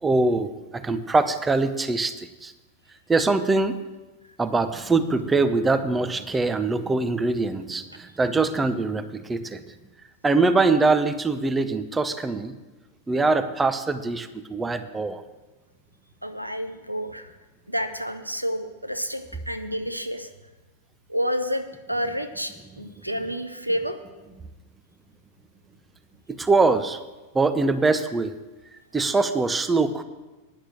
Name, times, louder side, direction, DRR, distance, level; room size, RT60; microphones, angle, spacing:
voice 1, 0.0-2.5 3.1-3.8 4.4-9.6 10.2-12.5 13.1-15.2 26.4-27.0 27.3-28.4 28.9-30.0, right 3 dB, 10° right, 10 dB, 0.7 m, -23 dB
voice 2, 16.2-17.3 17.7-20.3 21.1-24.0, equal, 90° right, 8 dB, 0.7 m, -29 dB
9.6 x 6.4 x 7.8 m, 1.2 s
figure-of-eight pair, 90°, 0 cm